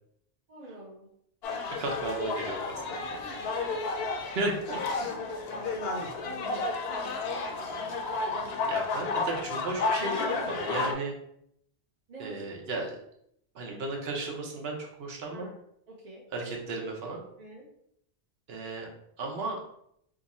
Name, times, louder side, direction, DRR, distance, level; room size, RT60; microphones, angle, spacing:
voice 1, 0.5-1.1 3.2-4.0 5.1-6.9 8.2-8.6 12.1-12.4 15.3-15.5 15.9-16.2 17.4-17.7, right 2 dB, 45° right, -3 dB, 0.7 m, -48 dB
sound 1, 1.4-10.9, left 3 dB, 70° left, 0.8 m, -32 dB
voice 2, 1.8-3.2 4.3-4.8 8.7-11.1 12.2-12.9 13.5-15.5 16.3-17.2 18.5-18.9 19.2-19.6, right 2 dB, 65° right, 1 dB, 1.0 m, -34 dB
2.8 x 2.5 x 4.0 m, 0.72 s
omnidirectional pair, 1.1 m